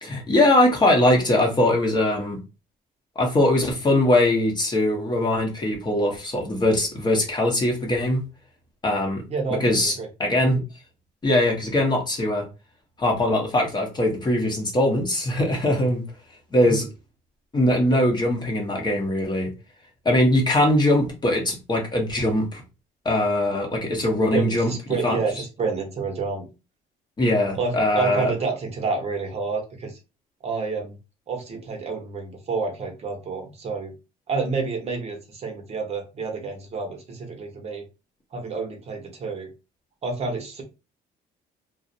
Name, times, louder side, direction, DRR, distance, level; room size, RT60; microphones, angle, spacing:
voice 1, 0.0-2.4 3.2-8.2 8.8-9.2 9.6-9.9 10.2-10.6 11.2-12.5 13.0-16.0 16.5-16.9 17.5-19.5 20.0-22.6 23.0-24.7 25.0-25.2 27.2-28.3, left 1 dB, 25° left, 0.7 m, -21 dB
voice 2, 9.3-10.1 16.7-16.8 24.3-26.5 27.5-30.0 30.4-31.0 31.3-33.9 34.3-37.8 38.3-39.5 40.0-40.6, right 4 dB, 40° right, 0.7 m, -29 dB
2.4 x 2.0 x 2.6 m
cardioid pair, 110°, 17 cm